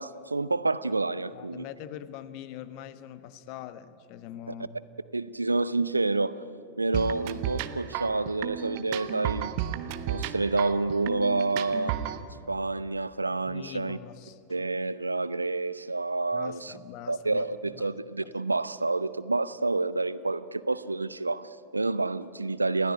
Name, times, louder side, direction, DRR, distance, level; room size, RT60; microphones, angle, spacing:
voice 1, 0.0-1.6 5.1-6.3 6.8-9.5 10.1-12.0 12.5-14.0 14.5-16.7 17.1-22.9, right 3 dB, 80° right, 17 dB, 0.7 m, -28 dB
voice 2, 1.3-4.8 12.4-12.5 13.4-14.6 16.3-18.3, left 10 dB, 45° left, 14 dB, 1.2 m, -43 dB
sound 1, 6.9-12.2, right 11 dB, 45° right, 1.1 m, -33 dB
28.5 x 16.5 x 9.8 m, 2.4 s
figure-of-eight pair, 90°, 0 cm